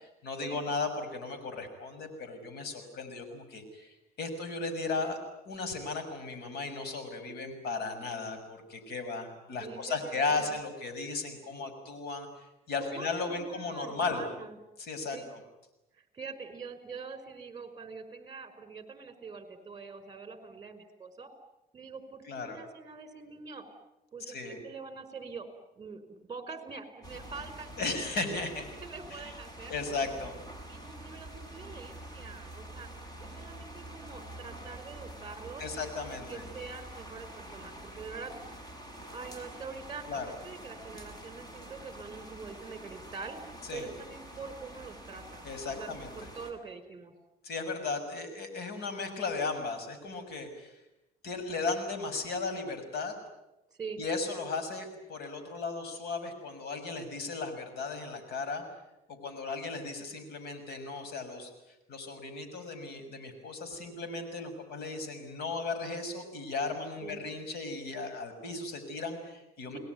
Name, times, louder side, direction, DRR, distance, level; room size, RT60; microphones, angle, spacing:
voice 1, 0.2-5.2 5.4-14.2 14.8-15.4 22.2-22.6 24.3-24.6 27.8-28.7 29.1-29.3 29.7-30.4 35.6-36.4 40.1-40.2 43.7-43.9 45.4-46.1 47.4-50.8 51.2-53.1 54.0-58.6 59.2-61.5 61.9-69.8, left 3 dB, 70° left, 9 dB, 6.4 m, -36 dB
voice 2, 9.6-10.5 12.8-14.6 15.1-15.3 15.9-21.3 21.7-23.7 24.1-25.5 25.8-27.9 28.2-29.7 30.7-32.9 33.2-35.7 36.1-38.3 39.1-43.4 43.7-47.1 53.7-54.0 67.0-67.3 69.7-69.8, right 5 dB, 25° right, 9 dB, 5.3 m, -44 dB
sound 1, 27.0-46.5, right 1 dB, 25° left, 6.6 m, -47 dB
30.0 x 20.5 x 9.5 m, 0.93 s
cardioid pair, 110°, 17 cm